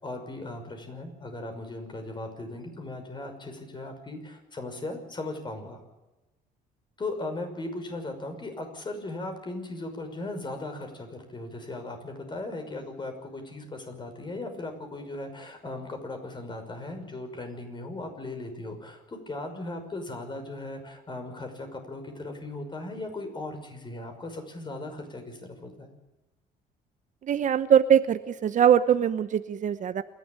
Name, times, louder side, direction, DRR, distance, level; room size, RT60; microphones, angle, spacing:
voice 1, 0.0-5.8 7.0-25.9, left 2 dB, 25° left, 5 dB, 5.8 m, -37 dB
voice 2, 27.3-30.0, right 9 dB, 50° right, 13 dB, 0.9 m, -22 dB
28.0 x 12.0 x 8.8 m, 1.0 s
cardioid pair, 110°, 17 cm